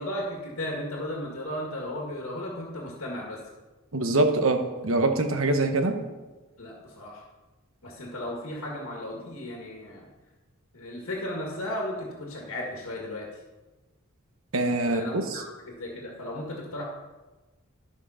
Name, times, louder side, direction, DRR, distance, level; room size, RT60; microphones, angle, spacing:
voice 1, 0.0-3.4 6.6-7.2 7.8-10.1 10.7-13.4 14.8-16.8, left 1 dB, 70° left, -1 dB, 1.8 m, -35 dB
voice 2, 3.9-6.0 14.5-15.4, right 2 dB, 70° right, 6 dB, 1.2 m, -24 dB
12.5 x 5.9 x 5.7 m, 1.2 s
head